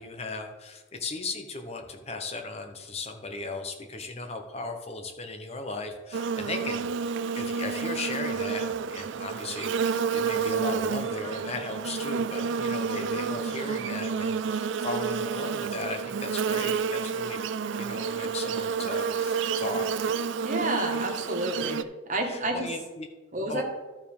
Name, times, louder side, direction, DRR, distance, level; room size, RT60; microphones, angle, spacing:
voice 1, 0.0-6.9 7.3-17.4 17.8-19.9 22.2-23.1 23.5-23.6, left 3 dB, 30° left, 5 dB, 0.9 m, -37 dB
Buzz, 6.1-21.8, right 6 dB, 70° right, 0.4 m, -30 dB
voice 2, 20.4-21.8 22.1-22.7 23.3-23.6, right 1 dB, 40° right, 0 dB, 1.6 m, -29 dB
12.5 x 4.9 x 5.3 m, 1.2 s
head